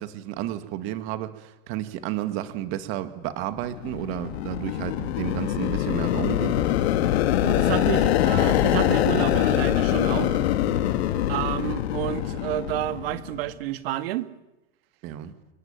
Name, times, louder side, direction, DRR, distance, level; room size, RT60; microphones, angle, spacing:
voice 1, 0.0-6.7 15.0-15.3, right 12 dB, 40° right, 2.0 m, -32 dB
sound 1, 3.6-13.4, left 12 dB, 90° left, 2.6 m, -24 dB
voice 2, 7.4-10.4 11.3-14.3, right 14 dB, 70° right, 1.9 m, -30 dB
29.0 x 20.5 x 9.0 m
supercardioid pair, 170°, 31 cm